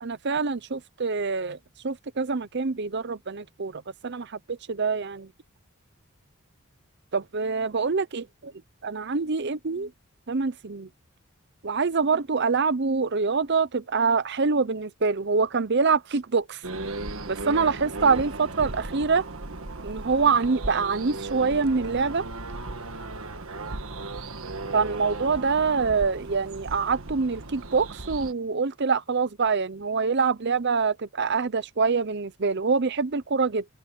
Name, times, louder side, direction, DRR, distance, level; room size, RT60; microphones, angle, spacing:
voice 1, 0.0-1.6 1.8-5.3 7.1-8.2 8.8-9.9 10.3-10.9 11.6-16.6 17.3-19.2 19.8-22.3 24.7-33.6, right 4 dB, 50° right, 0.7 m, -25 dB
sound 1, 16.6-28.3, right 2 dB, 70° right, 1.6 m, -36 dB
sound 2, 18.0-27.0, right 1 dB, 35° right, 2.9 m, -59 dB
open air
head